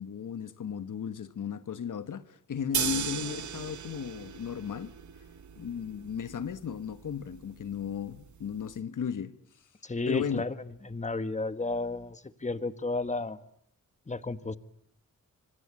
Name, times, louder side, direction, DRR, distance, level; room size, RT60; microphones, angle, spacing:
voice 1, 0.0-4.9 5.6-9.4 10.1-10.4, left 7 dB, 80° left, 1.3 m, -35 dB
sound 1, 2.7-8.8, right 8 dB, 65° right, 1.0 m, -38 dB
voice 2, 9.8-13.4 14.1-14.6, left 3 dB, 25° left, 1.5 m, -32 dB
26.0 x 26.0 x 8.5 m
cardioid pair, 80°, 31 cm